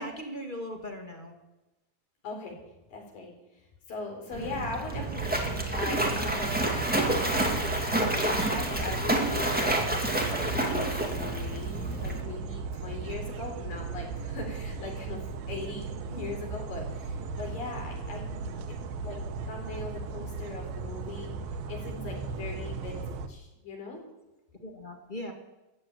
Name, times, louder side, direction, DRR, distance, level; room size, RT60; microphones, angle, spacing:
voice 1, 0.0-1.3 4.3-4.7 16.1-16.3 18.3-18.6 24.6-25.3, equal, 30° left, 3 dB, 0.9 m, -39 dB
voice 2, 2.2-2.6 2.9-3.3 3.9-18.2 18.7-19.2 19.5-21.3 21.7-24.0, left 3 dB, 70° left, 0 dB, 5.4 m, -40 dB
Splash splatter, 4.3-12.2, right 1 dB, 10° right, 0.6 m, -29 dB
sound 1, 4.9-23.3, right 4 dB, 85° right, 2.9 m, -36 dB
14.5 x 9.2 x 9.0 m, 1.1 s
omnidirectional pair, 4.1 m